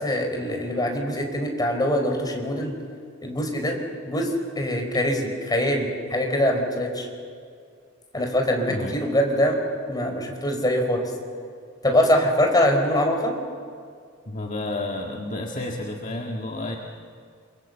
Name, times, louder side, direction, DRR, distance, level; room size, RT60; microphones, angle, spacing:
voice 1, 0.0-2.7 3.2-3.8 4.0-7.1 8.1-9.6 9.9-11.1 11.8-13.3, equal, 20° left, 2 dB, 4.4 m, -23 dB
voice 2, 14.3-16.8, left 2 dB, 40° left, 0 dB, 1.7 m, -30 dB
29.0 x 23.0 x 7.9 m, 2.2 s
head